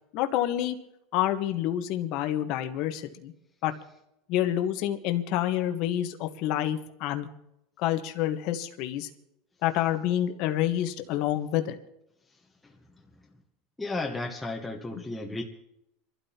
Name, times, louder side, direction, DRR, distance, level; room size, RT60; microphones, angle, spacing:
voice 1, 0.1-0.8 1.1-3.3 3.6-3.7 4.3-7.3 7.8-9.1 9.6-11.8 14.9-15.0, left 12 dB, 60° left, 1.2 m, -28 dB
voice 2, 13.8-15.4, left 2 dB, 10° left, 1.2 m, -33 dB
27.0 x 12.5 x 2.9 m
supercardioid pair, 120°, 0 cm